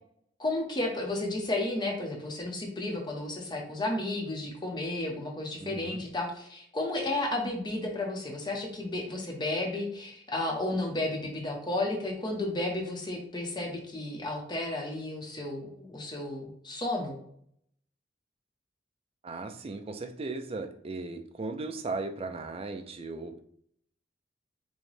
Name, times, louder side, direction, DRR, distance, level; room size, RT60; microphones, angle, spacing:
voice 1, 0.4-17.2, left 2 dB, 25° left, 1 dB, 0.8 m, -33 dB
voice 2, 5.6-6.0 19.2-23.4, right 3 dB, 30° right, 7 dB, 0.4 m, -37 dB
6.1 x 2.2 x 3.2 m, 0.66 s
head